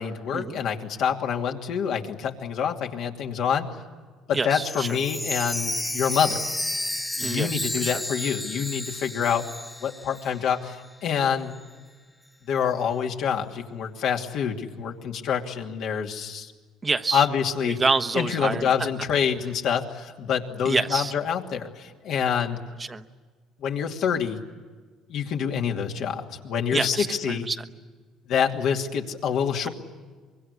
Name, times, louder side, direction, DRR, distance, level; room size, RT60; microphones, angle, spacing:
voice 1, 0.0-3.7 4.3-6.4 7.2-9.5 9.8-11.6 12.5-16.5 17.1-17.8 18.1-22.6 23.6-24.4 25.1-27.5 28.3-29.7, left 7 dB, 70° left, 2 dB, 2.7 m, -26 dB
voice 2, 4.3-5.0 7.2-8.0 16.8-17.3 17.6-18.7 20.6-21.1 22.8-23.0 26.7-27.6, right 4 dB, 25° right, 9 dB, 1.2 m, -27 dB
Chime, 4.6-10.5 10.8-10.9 11.5-11.6, left 1 dB, 10° left, 1.3 m, -32 dB
25.0 x 22.5 x 9.9 m, 1.5 s
cardioid pair, 95°, 0 cm